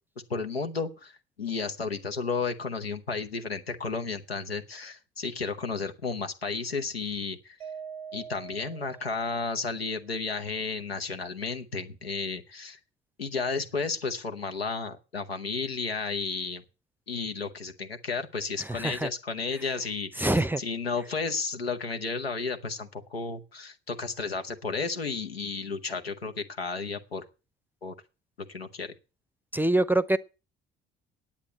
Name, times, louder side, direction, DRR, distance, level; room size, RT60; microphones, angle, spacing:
voice 1, 0.3-7.6 8.1-12.8 13.2-16.6 17.1-27.2 27.8-27.9 28.5-28.9, left 4 dB, 85° left, 0.9 m, -33 dB
Mallet percussion, 7.6-9.9, right 7 dB, 80° right, 0.7 m, -44 dB
voice 2, 18.7-19.1 20.2-20.6 29.5-30.2, right 1 dB, 5° right, 0.6 m, -24 dB
9.9 x 8.6 x 7.8 m
figure-of-eight pair, 50°, 29 cm